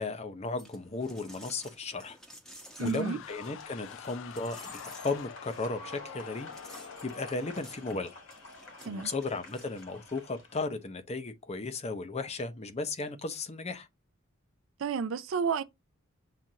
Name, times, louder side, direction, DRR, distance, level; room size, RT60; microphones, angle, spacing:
voice 1, 0.0-2.2 2.8-8.1 8.8-13.9, left 3 dB, 30° left, 0.6 m, -35 dB
sound 1, 0.6-10.3, equal, 5° left, 0.8 m, -53 dB
sound 2, 2.8-8.5, left 9 dB, 65° left, 0.3 m, -47 dB
voice 2, 2.8-3.2 8.8-9.1 14.8-15.6, right 6 dB, 65° right, 0.4 m, -31 dB
sound 3, 3.4-10.7, left 2 dB, 80° left, 2.1 m, -50 dB
7.4 x 2.5 x 2.7 m
head